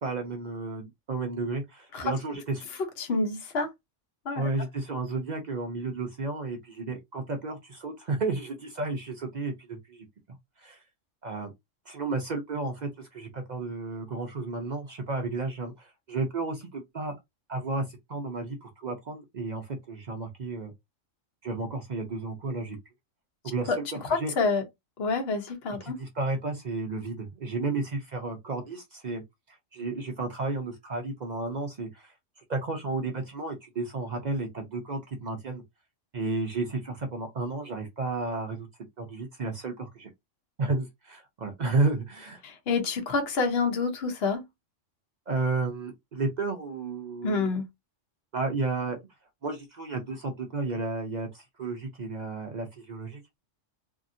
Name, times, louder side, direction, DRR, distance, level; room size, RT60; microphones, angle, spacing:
voice 1, 0.0-2.7 4.3-10.1 10.6-10.8 11.2-11.5 11.9-17.1 17.5-20.7 21.4-22.8 23.4-24.3 25.8-29.2 29.5-32.1 32.5-35.6 36.1-38.7 39.0-40.1 40.6-42.4 45.3-47.5 48.3-49.0 49.4-53.2, right 3 dB, 50° right, 0.5 m, -32 dB
voice 2, 3.0-3.7 4.3-4.4 23.7-23.8 24.1-24.6 25.0-26.0 42.4-44.4 47.2-47.6, left 4 dB, 55° left, 1.0 m, -27 dB
2.7 x 2.5 x 2.6 m
omnidirectional pair, 1.3 m